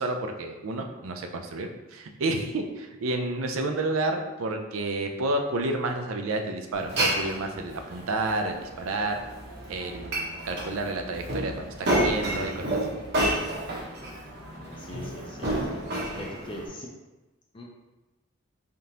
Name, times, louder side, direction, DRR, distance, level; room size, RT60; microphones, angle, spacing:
voice 1, 0.0-9.1 9.7-12.9, right 2 dB, 80° right, 4 dB, 0.5 m, -30 dB
Glass, 6.7-16.7, right 1 dB, 55° right, 1.0 m, -30 dB
voice 2, 14.0-15.8 16.2-16.9 17.5-17.6, equal, 25° left, -2 dB, 0.5 m, -41 dB
3.7 x 3.6 x 2.8 m, 1.1 s
head